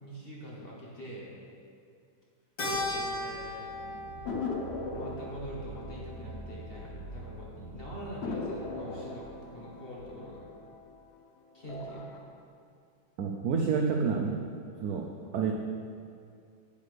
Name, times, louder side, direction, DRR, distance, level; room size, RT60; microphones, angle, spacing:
voice 1, 0.0-1.3 2.7-3.7 4.9-10.5 11.5-12.1, right 1 dB, 35° left, -5 dB, 1.1 m, -44 dB
Keyboard (musical), 2.6-7.2, left 1 dB, 70° left, 2.4 m, -38 dB
sound 1, 2.9-10.4, right 1 dB, 55° right, 1.5 m, -47 dB
sound 2, 4.3-7.3 7.6-7.7 8.2-11.2 11.6-12.2, left 3 dB, 90° left, 0.5 m, -39 dB
voice 2, 13.2-14.4 14.8-15.5, right 5 dB, 75° right, 2 dB, 0.8 m, -29 dB
8.4 x 8.2 x 3.3 m, 2.3 s
omnidirectional pair, 2.2 m